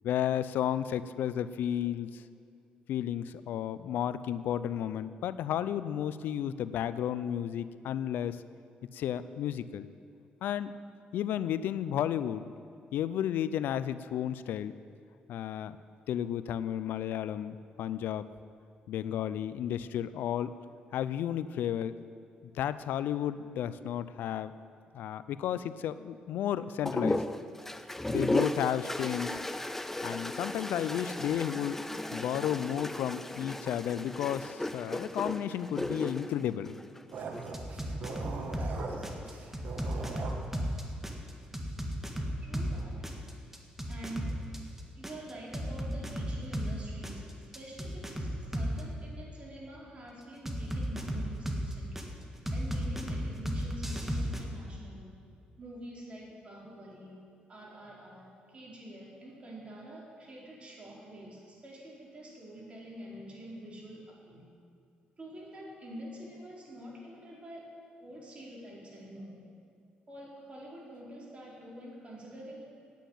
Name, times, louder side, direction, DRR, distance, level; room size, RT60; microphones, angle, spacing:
voice 1, 0.0-2.2 2.9-8.4 8.9-9.9 10.4-10.7 11.1-12.5 12.9-14.7 15.3-15.8 16.1-18.2 18.9-20.5 20.9-22.0 22.5-24.5 24.9-27.2 28.1-29.4 30.0-31.9 32.1-36.8, left 10 dB, 80° left, 14 dB, 0.4 m, -32 dB
sound 1, 26.8-37.5 38.7-39.3, left 1 dB, 10° left, 0.6 m, -35 dB
sound 2, 37.1-40.5, right 4 dB, 60° right, 1.5 m, -40 dB
sound 3, 37.5-38.7 39.0-42.7 43.0-46.7 47.0-48.8 50.5-52.0 52.5-54.4, equal, 10° right, 1.6 m, -34 dB
voice 2, 42.4-43.0 43.9-44.4 44.9-47.3 47.5-52.1 52.5-55.1 55.6-57.2 57.5-64.5 65.2-67.7 68.0-69.4 70.1-72.6, right 1 dB, 35° right, -4 dB, 4.0 m, -46 dB
9.2 x 9.2 x 9.0 m, 2.3 s
cardioid pair, 85°, 3 cm